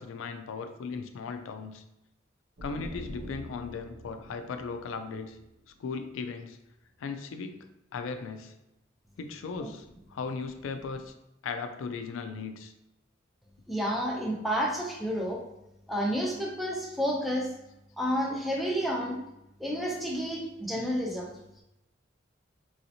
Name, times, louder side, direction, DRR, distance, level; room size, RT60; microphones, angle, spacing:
voice 1, 0.0-1.8 2.6-5.4 5.8-6.6 7.0-7.7 7.9-8.5 9.2-11.1 11.4-12.7, left 5 dB, 85° left, 8 dB, 0.3 m, -37 dB
sound 1, 2.6-6.2, equal, 55° right, 0.7 m, -45 dB
voice 2, 13.7-15.4 15.9-17.5 18.0-19.2 19.6-21.3, equal, ahead, -2 dB, 0.5 m, -30 dB
3.0 x 2.8 x 2.7 m, 0.88 s
head